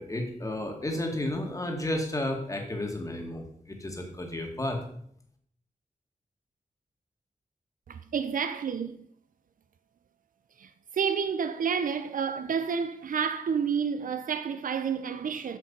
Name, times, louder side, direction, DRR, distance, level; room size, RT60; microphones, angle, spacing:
voice 1, 0.0-4.8, left 1 dB, 25° left, 1.9 m, -32 dB
voice 2, 7.9-9.0 10.6-15.6, right 6 dB, 90° right, 0.6 m, -30 dB
8.3 x 6.4 x 5.4 m
wide cardioid pair, 100°, 14 cm